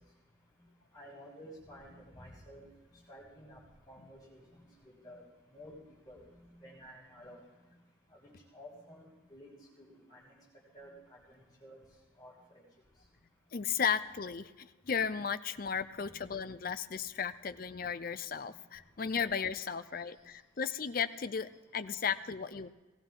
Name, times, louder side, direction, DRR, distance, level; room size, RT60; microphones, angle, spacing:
voice 1, 0.9-2.6 3.1-3.6 3.9-5.2 5.5-5.7 6.1-6.2 6.5-7.4 8.5-9.5 9.8-10.3 10.7-10.9 11.3-11.8 12.2-12.3, equal, 20° left, -5 dB, 6.5 m, -52 dB
voice 2, 13.5-22.7, left 6 dB, 45° left, 12 dB, 0.5 m, -35 dB
19.0 x 15.0 x 3.8 m, 1.2 s
head